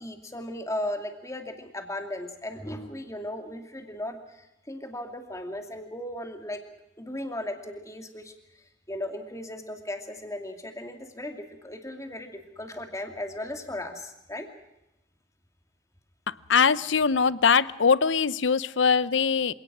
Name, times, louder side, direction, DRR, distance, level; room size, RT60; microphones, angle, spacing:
voice 1, 0.0-4.2 4.7-6.6 7.0-8.3 8.9-14.5, left 1 dB, 15° left, 5 dB, 2.5 m, -36 dB
voice 2, 16.3-19.5, left 6 dB, 75° left, 18 dB, 0.7 m, -22 dB
27.5 x 18.0 x 6.2 m, 0.92 s
head